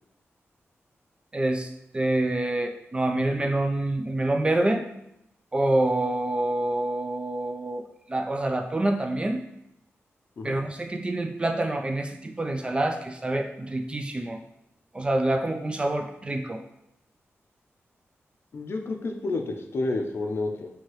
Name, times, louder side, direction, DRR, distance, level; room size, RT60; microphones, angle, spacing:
voice 1, 1.3-1.7 1.9-4.8 5.5-7.8 8.1-9.4 10.4-14.4 14.9-16.6, right 1 dB, 20° right, 4 dB, 0.3 m, -26 dB
voice 2, 18.5-20.7, left 2 dB, 55° left, 4 dB, 0.5 m, -30 dB
4.6 x 2.8 x 3.0 m, 0.83 s
wide cardioid pair, 115°, 5 cm